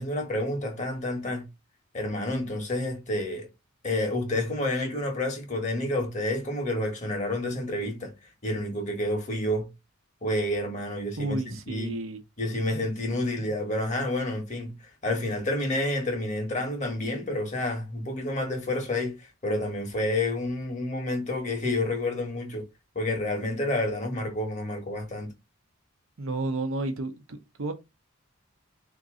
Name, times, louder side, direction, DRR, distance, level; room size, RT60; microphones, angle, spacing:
voice 1, 0.0-1.5 1.9-3.5 3.8-8.1 8.4-9.7 10.2-12.0 12.4-14.7 15.0-22.6 22.9-25.3, left 1 dB, 35° left, 1.4 m, -29 dB
voice 2, 11.2-12.2 13.1-13.2 26.2-27.7, right 2 dB, 70° right, 0.8 m, -32 dB
3.8 x 3.0 x 3.7 m
head